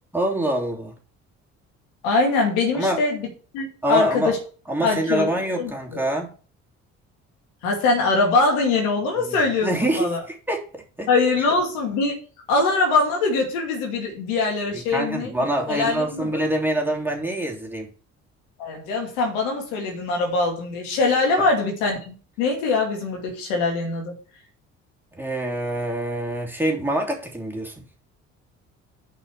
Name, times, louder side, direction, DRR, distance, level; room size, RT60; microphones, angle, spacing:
voice 1, 0.1-0.9 2.7-3.0 3.8-4.3 4.7-6.3 9.3-11.1 14.7-17.9 21.4-21.5 25.1-27.7, right 1 dB, 5° right, 0 dB, 3.2 m, -25 dB
voice 2, 2.0-3.3 3.5-4.4 4.8-5.3 5.6-6.0 7.6-9.7 10.0-10.2 11.1-12.2 12.5-15.3 15.7-16.4 18.6-24.2, left 3 dB, 75° left, 1 dB, 2.5 m, -22 dB
6.7 x 5.8 x 6.5 m, 0.39 s
hypercardioid pair, 55°, 38 cm